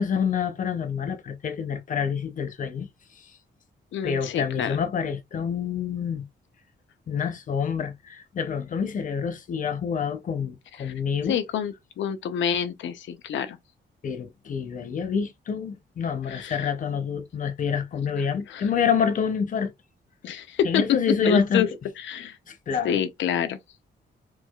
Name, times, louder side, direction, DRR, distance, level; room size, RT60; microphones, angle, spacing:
voice 1, 0.0-2.9 4.0-6.2 7.1-11.4 14.0-19.7 20.6-21.7 22.5-23.0, left 6 dB, 45° left, 0.6 m, -27 dB
voice 2, 3.9-4.8 10.8-10.9 11.3-13.6 16.3-16.7 18.0-18.7 20.2-20.8 21.2-21.7 22.0-22.4 22.8-23.6, left 8 dB, 85° left, 0.6 m, -28 dB
4.6 x 2.3 x 2.3 m
wide cardioid pair, 150°, 19 cm